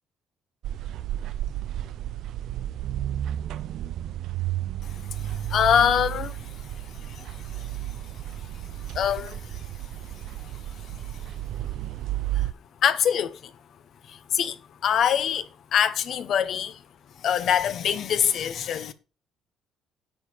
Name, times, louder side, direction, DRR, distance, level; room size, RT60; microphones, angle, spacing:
sound 1, 0.6-12.5, right 12 dB, 65° right, 0.5 m, -32 dB
voice 1, 5.2-6.4 7.1-7.7 8.9-9.6 12.8-13.5 14.1-14.6 14.8-16.8 17.2-18.9, left 9 dB, 55° left, 1.0 m, -24 dB
10.0 x 7.4 x 4.6 m
cardioid pair, 135°, 0 cm